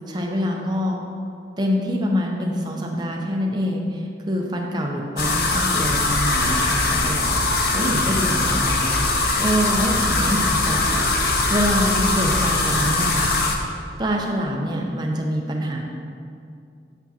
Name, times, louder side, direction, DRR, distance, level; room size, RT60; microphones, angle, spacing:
voice 1, 0.1-1.0 1.6-11.0 11.5-13.3 14.0-15.8, equal, 25° right, 0 dB, 0.6 m, -25 dB
sound 1, 5.2-13.6, left 2 dB, 60° left, 0.7 m, -21 dB
8.0 x 6.0 x 2.9 m, 2.4 s
head